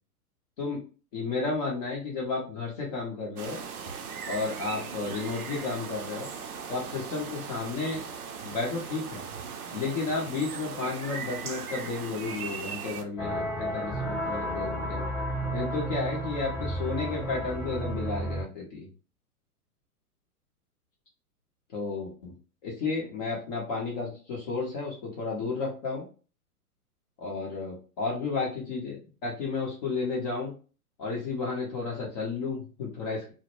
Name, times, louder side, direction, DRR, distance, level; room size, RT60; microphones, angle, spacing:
voice 1, 1.1-3.6 4.3-6.3 6.7-8.0 8.4-9.2 9.7-15.1 15.5-18.9 21.7-22.3 22.6-26.0 27.2-30.5 31.0-33.3, left 4 dB, 25° left, -3 dB, 0.5 m, -32 dB
sound 1, 3.4-13.0, right 6 dB, 70° right, 0.6 m, -38 dB
sound 2, 13.2-18.4, right 1 dB, 5° left, 0.8 m, -32 dB
2.1 x 2.0 x 2.9 m, 0.36 s
figure-of-eight pair, 115°, 46 cm